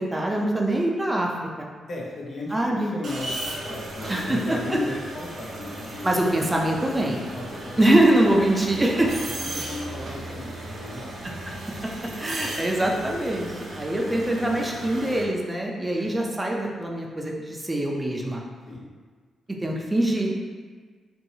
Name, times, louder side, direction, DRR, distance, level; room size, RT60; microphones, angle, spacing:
voice 1, 0.0-1.7 2.5-2.9 4.1-4.8 6.0-7.2 7.8-9.1 12.2-18.4 19.6-20.3, right 1 dB, 20° right, -1 dB, 0.5 m, -23 dB
voice 2, 1.9-6.1 7.3-8.0 8.5-11.0 12.4-12.6 16.0-16.2 18.6-18.9, left 2 dB, 60° left, -4 dB, 0.8 m, -35 dB
sound 1, 3.0-15.2, right 1 dB, 70° right, 0.6 m, -36 dB
2.9 x 2.7 x 2.7 m, 1.5 s
supercardioid pair, 50°, 0 cm